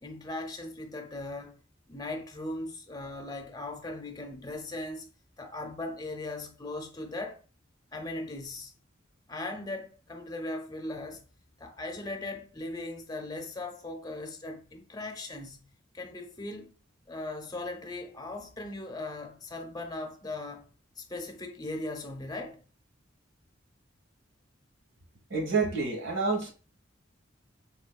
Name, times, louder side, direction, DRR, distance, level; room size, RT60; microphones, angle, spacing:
voice 1, 0.0-1.6 1.9-5.1 5.4-7.4 7.9-8.7 9.3-11.2 11.6-15.7 15.9-16.8 17.1-20.7 21.0-22.6, left 2 dB, 20° left, 0.7 m, -38 dB
voice 2, 25.3-26.5, right 4 dB, 85° right, 1.7 m, -28 dB
4.3 x 3.2 x 2.2 m
head